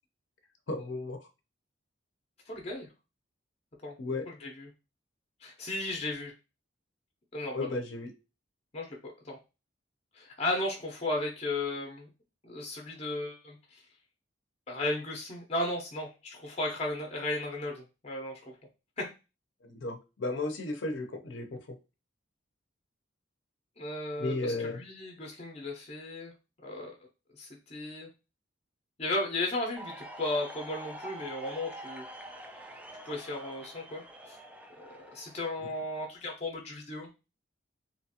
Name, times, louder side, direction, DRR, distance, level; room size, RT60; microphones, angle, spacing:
voice 1, 0.7-1.3 4.0-4.3 7.5-8.1 19.6-21.8 24.2-24.8, left 2 dB, 75° left, 5 dB, 0.6 m, -34 dB
voice 2, 2.5-2.9 3.8-4.0 4.3-4.7 5.4-6.3 7.3-7.8 8.7-9.4 10.1-12.1 12.4-13.8 14.7-18.4 19.0-19.1 23.8-26.3 26.6-26.9 27.3-28.1 29.0-32.1 33.0-34.4 34.8-37.1, left 2 dB, 35° left, 1 dB, 0.6 m, -35 dB
sound 1, 29.7-36.2, right 1 dB, 10° right, 0.3 m, -46 dB
2.9 x 2.4 x 2.7 m, 0.28 s
head